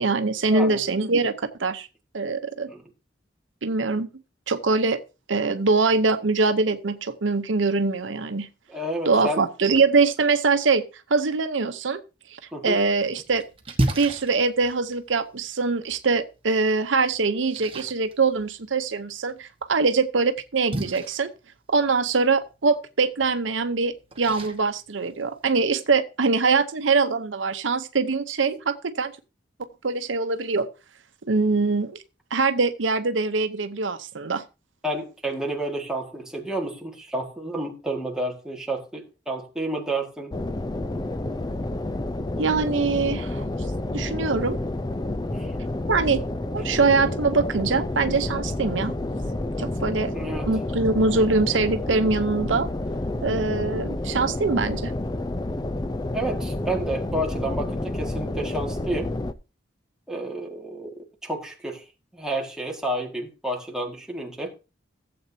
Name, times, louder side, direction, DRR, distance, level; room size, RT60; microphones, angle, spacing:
voice 1, 0.0-1.9 2.1-2.7 3.6-4.1 4.5-5.0 5.3-8.5 9.1-10.8 11.1-12.0 12.3-13.4 14.0-21.3 21.7-29.1 29.8-30.7 31.2-31.9 32.3-34.4 42.4-43.5 43.9-44.6 45.9-46.2 46.5-48.9 49.6-50.1 50.5-52.7 53.2-54.9, right 4 dB, 90° right, 0.8 m, -23 dB
voice 2, 8.7-9.4 12.5-12.8 34.8-40.3 45.3-45.5 50.1-50.5 56.1-59.1 60.1-61.8 62.1-64.5, right 1 dB, 5° right, 1.8 m, -30 dB
Splash splatter, 12.7-25.7, right 1 dB, 30° right, 1.3 m, -36 dB
sound 1, 40.3-59.3, left 2 dB, 20° left, 0.5 m, -29 dB
15.0 x 7.8 x 2.8 m
head